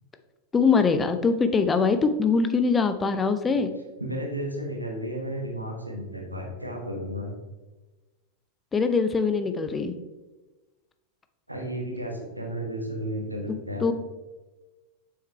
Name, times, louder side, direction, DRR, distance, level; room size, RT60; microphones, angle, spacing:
voice 1, 0.5-3.7 8.7-9.9 13.8-13.9, left 5 dB, 15° left, 9 dB, 0.6 m, -22 dB
voice 2, 4.0-7.4 11.5-13.9, equal, 85° right, 1 dB, 1.5 m, -33 dB
7.5 x 5.8 x 3.2 m, 1.2 s
figure-of-eight pair, 90°, 0 cm